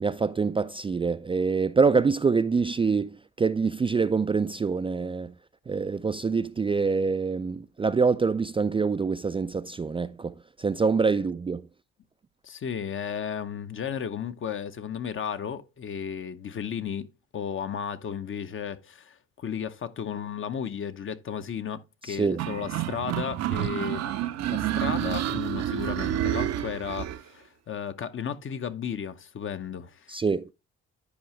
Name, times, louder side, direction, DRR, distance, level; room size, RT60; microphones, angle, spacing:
voice 1, 0.0-5.3 5.7-11.7 22.0-22.4 30.1-30.5, right 4 dB, 20° right, 0.4 m, -25 dB
voice 2, 12.4-17.1 17.3-24.1 24.5-30.1, left 7 dB, 45° left, 0.8 m, -34 dB
sound 1, 22.4-27.2, right 12 dB, 60° right, 0.7 m, -29 dB
10.5 x 4.7 x 3.1 m
supercardioid pair, 65°, 29 cm